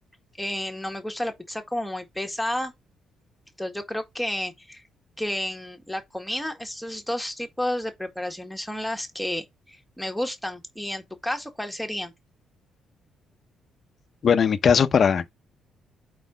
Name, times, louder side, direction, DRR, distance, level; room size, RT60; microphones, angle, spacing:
voice 1, 0.4-2.7 3.6-4.8 5.2-12.1, left 1 dB, 5° left, 1.6 m, -31 dB
voice 2, 14.2-15.3, left 7 dB, 50° left, 0.7 m, -19 dB
4.7 x 4.2 x 5.1 m
cardioid pair, 90°, 0 cm